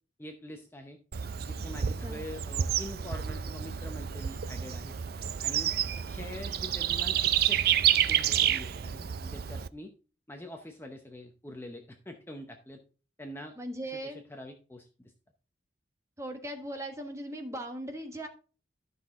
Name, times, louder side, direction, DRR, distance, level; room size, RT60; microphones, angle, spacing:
voice 1, 0.2-1.0 1.4-5.0 5.4-5.7 6.0-7.6 7.9-9.9 10.3-12.8 13.2-13.5 13.8-15.1, left 1 dB, 10° left, 4 dB, 0.7 m, -45 dB
Bird / Insect, 1.1-9.7, right 10 dB, 50° right, 0.4 m, -29 dB
voice 2, 1.8-2.2 13.6-14.2 16.2-18.3, right 1 dB, 15° right, 4 dB, 1.3 m, -39 dB
12.0 x 6.1 x 3.6 m, 0.36 s
head